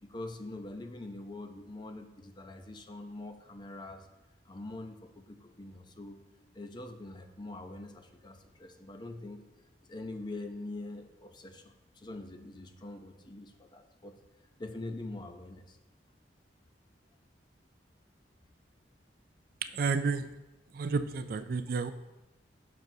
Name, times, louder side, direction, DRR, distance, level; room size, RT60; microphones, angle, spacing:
voice 1, 0.0-4.1 4.4-6.2 6.5-9.4 9.9-14.2 14.6-15.8, left 2 dB, 25° left, 6 dB, 0.6 m, -44 dB
voice 2, 19.6-20.3 20.7-21.9, right 4 dB, 55° right, 11 dB, 0.3 m, -31 dB
9.0 x 6.1 x 2.7 m, 1.0 s
head